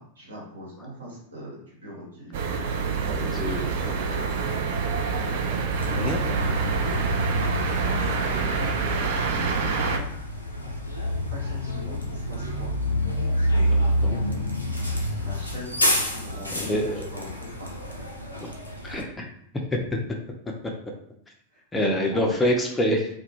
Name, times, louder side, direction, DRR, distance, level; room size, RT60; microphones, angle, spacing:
voice 1, 0.0-2.6 2.9-3.9 5.4-7.0 7.6-10.1 11.2-12.7 13.5-14.1 14.8-14.9 15.2-18.0 21.5-22.4, equal, 70° right, -4 dB, 1.1 m, -41 dB
sound 1, 2.3-10.0, right 5 dB, 55° right, 0.3 m, -27 dB
voice 2, 3.2-3.6 5.9-6.2 14.0-14.2 16.5-17.1 18.4-18.5 18.8-19.3 19.9-20.0 21.7-23.1, equal, 15° left, 1 dB, 0.4 m, -25 dB
Bus, 5.7-19.0, equal, 85° left, 0.4 m, -28 dB
2.2 x 2.0 x 3.0 m, 0.68 s
figure-of-eight pair, 90°, 0 cm